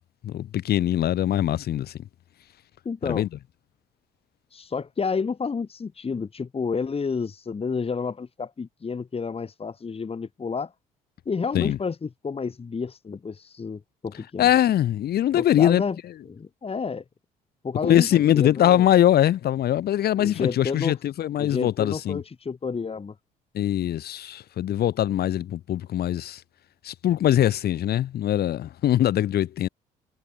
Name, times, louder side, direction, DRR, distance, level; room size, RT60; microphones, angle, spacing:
voice 1, 0.2-1.9 3.0-3.3 11.5-11.8 14.4-15.8 17.8-22.2 23.5-26.4 26.8-29.7, left 12 dB, 65° left, 3.4 m, -22 dB
voice 2, 2.8-3.3 4.5-10.7 11.3-14.5 15.3-16.0 16.3-17.0 17.6-18.9 20.2-21.0 21.4-23.1, left 5 dB, 35° left, 2.4 m, -30 dB
hypercardioid pair, 60°, 18 cm